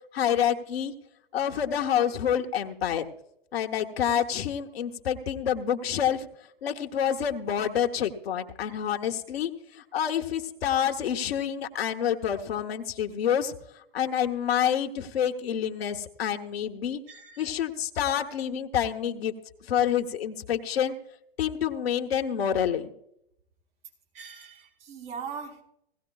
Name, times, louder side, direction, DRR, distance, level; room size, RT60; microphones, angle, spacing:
voice 1, 0.1-0.9 1.3-3.1 3.5-6.3 6.6-13.5 13.9-17.0 17.4-19.3 19.7-20.9 21.4-22.9, left 9 dB, 70° left, 4 dB, 1.1 m, -28 dB
voice 2, 17.1-17.5 24.1-25.6, right 6 dB, 65° right, 0 dB, 5.1 m, -40 dB
17.5 x 16.5 x 2.3 m, 0.75 s
hypercardioid pair, 110°, 31 cm